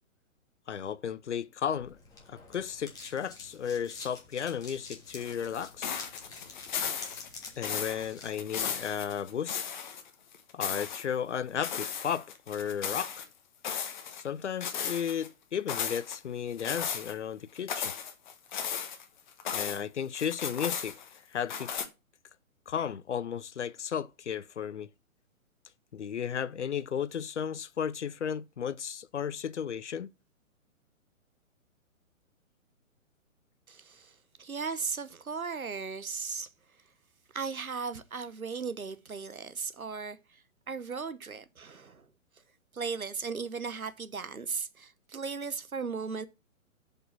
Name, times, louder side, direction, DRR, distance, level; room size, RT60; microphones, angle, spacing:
voice 1, 0.7-2.0 2.3-5.9 7.6-9.6 10.5-13.3 14.1-17.9 19.5-21.0 21.3-21.7 22.7-24.9 25.9-30.1, left 8 dB, 55° left, 0.6 m, -34 dB
sound 1, 1.7-8.4, left 3 dB, 10° left, 1.8 m, -48 dB
sound 2, 5.2-10.1 10.3-11.0 11.6-13.3 13.6-14.3 14.6-15.3 15.7-16.2 16.6-17.1 17.6-19.8 20.1-21.2 21.5-21.9, left 7 dB, 35° left, 1.1 m, -35 dB
voice 2, 33.7-36.5 37.3-40.4 40.7-42.1 42.7-46.3, right 5 dB, 80° right, 1.0 m, -37 dB
7.8 x 5.4 x 5.9 m
figure-of-eight pair, 125°, 42 cm